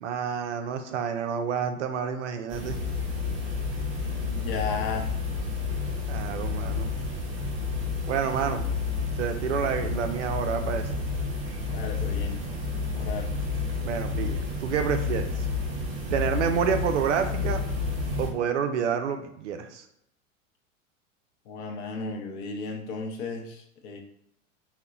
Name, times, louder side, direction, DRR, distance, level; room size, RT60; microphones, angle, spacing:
voice 1, 0.0-2.8 6.1-6.9 8.1-8.7 9.2-10.9 13.8-15.5 16.1-17.6 18.2-19.8, right 7 dB, 65° right, 7 dB, 0.5 m, -28 dB
sound 1, 2.5-18.3, left 4 dB, 30° right, 0.9 m, -30 dB
voice 2, 4.3-5.1 11.7-12.4 12.9-13.3 21.5-24.0, left 4 dB, 45° left, 3 dB, 0.6 m, -34 dB
3.7 x 2.1 x 2.3 m, 0.76 s
figure-of-eight pair, 90°, 39 cm